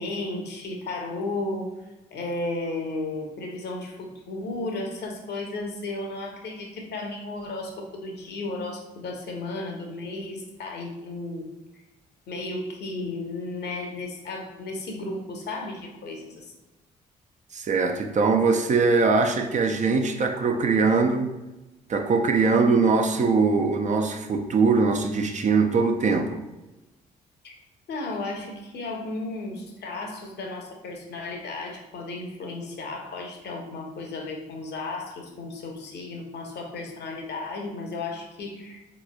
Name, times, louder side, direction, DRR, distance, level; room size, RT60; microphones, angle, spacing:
voice 1, 0.0-1.7 2.1-11.5 12.3-16.5 27.4-27.5 27.9-38.8, left 2 dB, 55° left, 2 dB, 0.8 m, -34 dB
voice 2, 17.5-21.3 21.9-26.4, right 4 dB, 35° right, 4 dB, 0.4 m, -22 dB
3.9 x 3.0 x 2.2 m, 1.0 s
hypercardioid pair, 45°, 20 cm